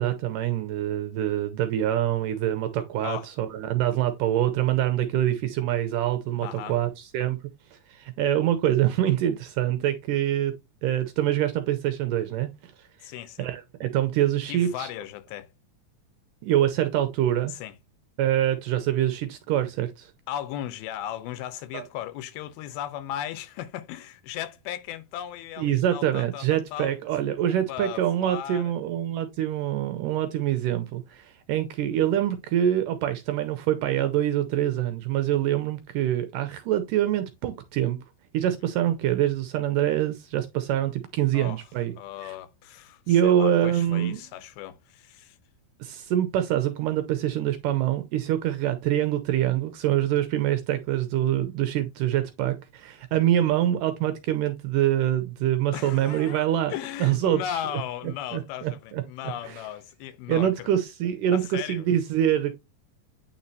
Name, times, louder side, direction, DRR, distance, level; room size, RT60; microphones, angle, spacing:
voice 1, 0.0-7.4 7.9-10.5 10.8-12.7 13.4-14.9 16.4-17.5 18.2-20.1 21.7-21.8 25.6-38.0 38.3-41.9 42.2-42.3 43.1-44.2 45.8-56.7 57.0-57.6 58.3-59.0 59.5-59.6 60.3-62.5, right 11 dB, 85° right, 2.0 m, -25 dB
voice 2, 6.4-6.8 13.0-13.5 14.5-15.5 17.5-17.7 20.3-26.9 27.4-28.7 41.3-41.6 41.9-45.4 55.7-60.8 61.3-61.9, left 11 dB, 85° left, 2.7 m, -36 dB
8.8 x 4.2 x 2.7 m
omnidirectional pair, 4.3 m